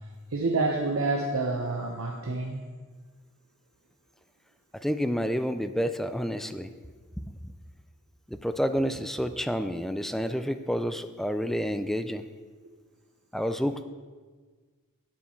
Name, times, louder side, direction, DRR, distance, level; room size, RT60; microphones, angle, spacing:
voice 1, 0.3-2.6, right 3 dB, 65° right, 1 dB, 0.9 m, -28 dB
voice 2, 4.8-6.7 8.3-12.2 13.3-13.8, equal, ahead, 9 dB, 0.4 m, -29 dB
9.7 x 7.3 x 4.5 m, 1.5 s
head